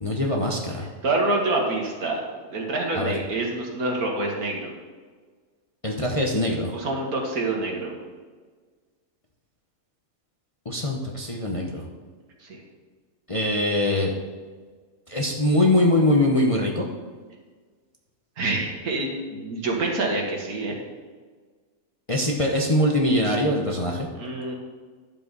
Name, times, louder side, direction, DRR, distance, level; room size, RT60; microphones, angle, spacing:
voice 1, 0.0-0.9 2.9-3.1 5.8-6.7 10.6-11.9 13.3-14.1 15.1-16.9 22.1-24.1, left 1 dB, 25° left, -1 dB, 0.9 m, -22 dB
voice 2, 1.0-2.2 2.5-4.7 6.7-7.9 12.4-12.6 18.4-20.7 24.1-24.5, right 2 dB, 70° right, 0 dB, 2.2 m, -26 dB
11.0 x 7.2 x 4.1 m, 1.5 s
omnidirectional pair, 1.6 m